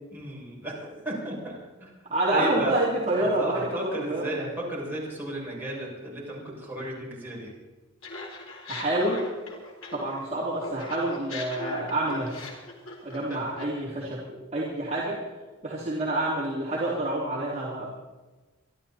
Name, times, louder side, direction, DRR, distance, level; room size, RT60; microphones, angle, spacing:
voice 1, 0.1-1.9 2.3-2.8 3.2-7.5 13.3-13.4, right 1 dB, 10° right, -5 dB, 6.7 m, -34 dB
voice 2, 2.1-4.3 8.7-9.2 9.9-12.3 13.0-15.2 15.6-17.9, right 1 dB, 30° right, -6 dB, 3.2 m, -28 dB
Laughter, 8.0-10.3 10.6-13.8, left 2 dB, 85° left, 4.3 m, -39 dB
26.5 x 12.5 x 4.3 m, 1.2 s
head